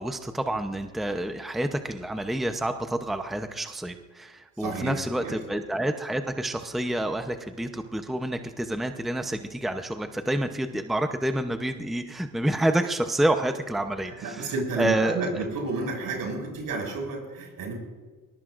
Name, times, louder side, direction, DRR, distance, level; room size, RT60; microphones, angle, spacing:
voice 1, 0.0-14.5 14.8-15.4, right 1 dB, ahead, 7 dB, 0.8 m, -28 dB
voice 2, 4.6-5.4 14.1-17.7, right 3 dB, 75° right, 1 dB, 6.3 m, -31 dB
23.0 x 21.0 x 2.6 m, 1.4 s
cardioid pair, 120°, 35 cm